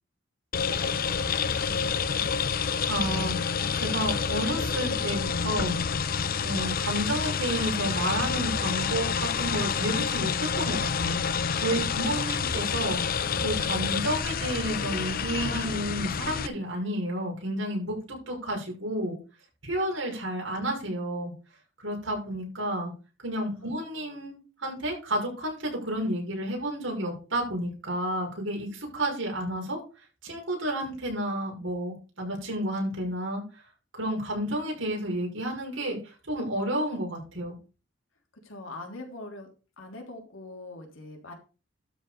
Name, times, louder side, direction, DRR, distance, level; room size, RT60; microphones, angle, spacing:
sound 1, 0.5-16.5, left 6 dB, 50° left, 0.6 m, -28 dB
voice 1, 0.6-2.3 23.5-23.8 38.3-39.5 39.8-41.3, left 2 dB, 85° left, 2 dB, 3.1 m, -44 dB
voice 2, 2.9-5.8 6.4-13.0 13.4-19.2 19.6-21.3 21.8-22.9 23.2-29.8 30.2-33.4 33.9-37.6, right 1 dB, 75° right, -1 dB, 5.8 m, -31 dB
12.5 x 4.9 x 5.2 m, 0.33 s
head